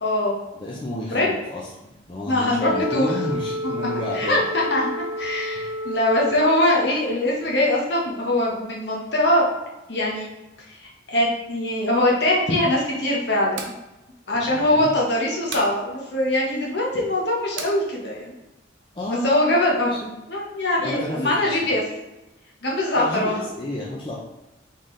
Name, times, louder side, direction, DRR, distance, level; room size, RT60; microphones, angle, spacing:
voice 1, 0.0-0.4 1.1-1.3 2.3-3.1 4.1-9.4 9.9-10.3 11.1-13.7 14.3-18.3 19.1-19.9 20.3-21.8 22.6-23.5, left 1 dB, 55° left, -3 dB, 1.1 m, -22 dB
voice 2, 0.5-4.4 5.6-5.7 14.5-14.9 18.9-20.1 20.8-21.6 22.9-24.2, left 1 dB, 25° left, -5 dB, 0.5 m, -31 dB
Wind instrument woodwind instrument, 2.6-6.9, left 1 dB, 25° right, 0.6 m, -30 dB
sound 1, 13.5-13.8 15.5-15.8 17.6-17.8, right 5 dB, 70° right, 0.6 m, -34 dB
4.0 x 3.7 x 3.2 m, 0.98 s
head